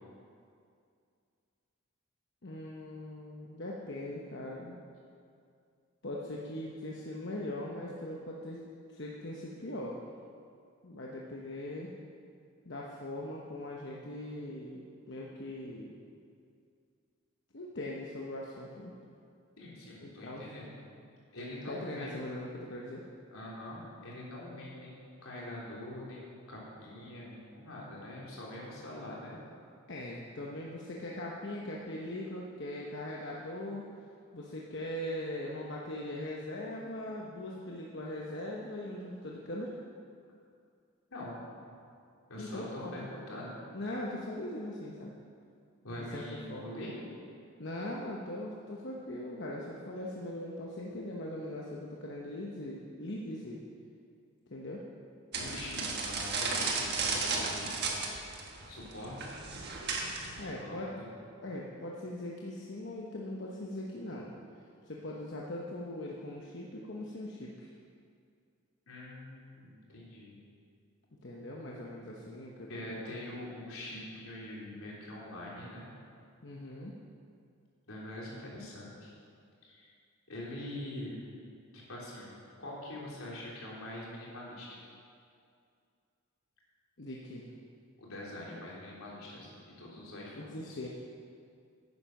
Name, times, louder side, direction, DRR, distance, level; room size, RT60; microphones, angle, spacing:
voice 1, 2.4-4.7 6.0-8.6 8.9-10.0 10.8-11.9 12.6-14.8 15.1-15.9 17.5-18.9 20.0-20.4 21.7-23.0 29.9-33.9 34.3-39.8 42.4-42.9 43.7-45.1 46.0-46.7 47.6-53.6 54.5-54.8 60.4-60.9 61.4-64.3 64.9-67.7 71.2-73.1 76.4-77.0 87.0-87.5 90.3-90.9, left 1 dB, 55° left, -3 dB, 1.0 m, -40 dB
voice 2, 19.6-20.7 21.3-22.2 23.3-25.0 25.2-26.2 26.5-29.3 41.1-41.4 42.3-43.6 45.8-47.0 55.3-57.8 58.1-58.4 58.7-59.3 60.4-61.1 68.9-70.4 72.7-75.9 77.9-79.1 79.6-79.9 80.3-81.2 81.7-84.8 88.0-90.8, left 1 dB, 80° left, -5 dB, 3.5 m, -44 dB
sound 1, 55.3-60.4, right 4 dB, 50° right, 1.4 m, -34 dB
10.0 x 9.7 x 6.0 m, 2.3 s
head